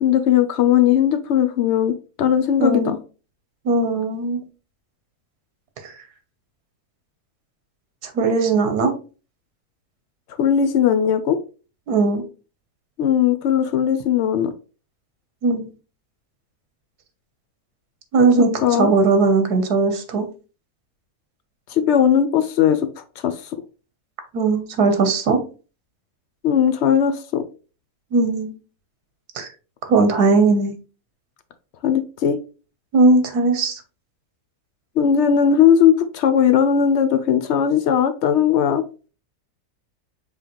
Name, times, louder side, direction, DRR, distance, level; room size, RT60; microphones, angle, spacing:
voice 1, 0.0-3.0 10.4-11.4 13.0-14.5 18.6-18.9 21.7-22.9 23.2-23.4 26.4-27.4 31.8-32.4 35.0-38.8, left 8 dB, 65° left, 0.7 m, -18 dB
voice 2, 2.6-2.9 3.6-4.4 8.0-8.9 11.9-12.2 15.4-15.6 18.1-18.5 18.8-20.2 24.3-25.4 28.1-28.5 29.3-29.5 29.9-30.7 32.9-33.8, right 3 dB, 90° right, 1.4 m, -18 dB
5.4 x 3.3 x 2.9 m
omnidirectional pair, 1.6 m